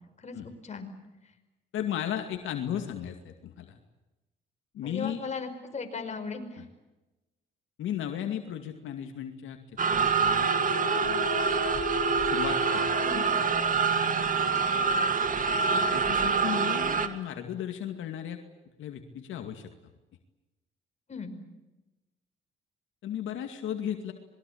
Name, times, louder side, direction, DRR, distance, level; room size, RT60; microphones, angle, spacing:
voice 1, 0.2-0.9 4.8-6.6 13.0-13.2 14.5-14.7 21.1-21.3, left 4 dB, 35° left, 5 dB, 5.3 m, -37 dB
voice 2, 1.7-3.8 4.7-5.2 6.6-6.7 7.8-9.6 9.9-10.5 11.0-11.3 12.2-12.9 13.1-13.2 15.7-18.4 18.8-19.7 23.0-24.1, left 10 dB, 80° left, 5 dB, 2.4 m, -35 dB
sound 1, 9.8-17.1, right 5 dB, 40° right, 2.5 m, -26 dB
sound 2, 10.1-17.5, left 5 dB, 55° left, 4.8 m, -37 dB
26.5 x 22.0 x 8.7 m, 1.1 s
cardioid pair, 90°, 20 cm